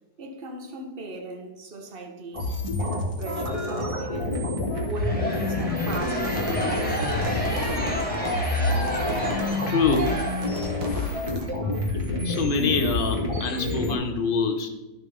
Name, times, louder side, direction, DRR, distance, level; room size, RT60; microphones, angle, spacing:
voice 1, 0.2-4.5 4.8-7.1 11.4-11.5, right 3 dB, 35° right, 1.0 m, -38 dB
sound 1, 2.3-13.9, left 2 dB, 15° right, 1.9 m, -28 dB
sound 2, 5.0-10.9, equal, 5° left, 1.5 m, -31 dB
sound 3, 5.9-11.5, right 1 dB, 75° right, 2.0 m, -36 dB
voice 2, 9.7-10.2 12.2-14.7, left 4 dB, 60° left, 0.5 m, -25 dB
13.0 x 6.1 x 3.6 m
omnidirectional pair, 2.2 m